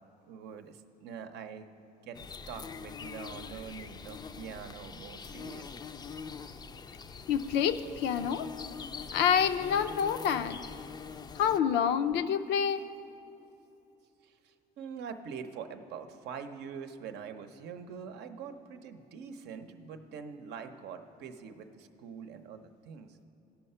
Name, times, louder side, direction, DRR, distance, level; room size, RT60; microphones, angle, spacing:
voice 1, 0.2-1.7 2.0-5.9 14.2-23.2, right 6 dB, 80° right, 7 dB, 0.7 m, -44 dB
sound 1, 2.1-11.6, left 6 dB, 25° left, 0.3 m, -43 dB
voice 2, 7.3-8.5 9.1-10.6 11.3-12.8, left 8 dB, 85° left, 10 dB, 0.5 m, -27 dB
16.5 x 5.7 x 5.5 m, 2.9 s
cardioid pair, 110°, 17 cm